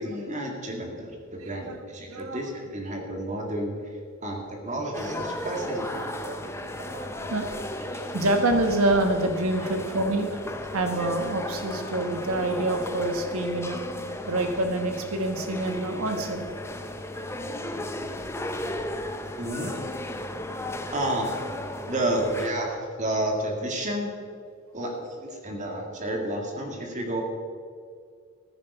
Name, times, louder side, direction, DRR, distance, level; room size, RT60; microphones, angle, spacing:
voice 1, 0.0-5.9 6.1-7.3 7.8-8.1 9.6-9.7 19.1-19.8 20.9-21.3 21.9-24.1 24.7-27.2, right 1 dB, 35° right, 1 dB, 2.1 m, -31 dB
voice 2, 1.4-1.8 2.1-2.4 5.7-7.5 8.1-13.8 14.3-16.5 17.1-17.4 18.5-18.6 19.6-19.7, right 2 dB, 70° right, 5 dB, 1.4 m, -27 dB
sound 1, 4.9-22.5, left 1 dB, 10° left, 0.7 m, -35 dB
15.0 x 9.6 x 5.5 m, 2.1 s
head